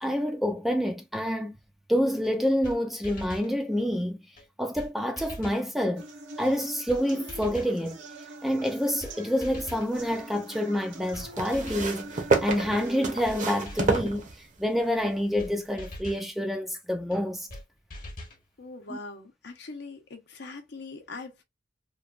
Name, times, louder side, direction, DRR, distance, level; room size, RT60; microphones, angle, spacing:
voice 1, 0.0-1.6 1.9-4.2 4.6-6.0 6.4-8.0 8.4-17.5 18.9-19.0, equal, ahead, 0.4 m, -28 dB
sound 1, 2.2-2.3 2.6-2.8 3.0-3.5 4.4-4.5 4.8-4.9 5.2-5.7 6.5-6.6 6.9-7.0 7.3-7.8 8.6-8.7 9.0-9.1 9.4-9.9 10.7-10.8 11.1-11.3 11.5-12.0 12.9-13.0 13.2-13.4 13.7-14.1 15.0-15.1 15.4-15.5 15.8-16.3 17.1-17.2 17.5-17.6 17.9-18.4, left 1 dB, 45° left, 1.0 m, -41 dB
sound 2, 6.0-14.0, right 2 dB, 85° right, 0.9 m, -44 dB
sound 3, 9.4-10.2 11.3-14.8 15.7-15.8, right 3 dB, 40° right, 0.7 m, -29 dB
voice 2, 18.6-21.4, left 3 dB, 65° left, 0.7 m, -42 dB
3.0 x 2.2 x 2.4 m
head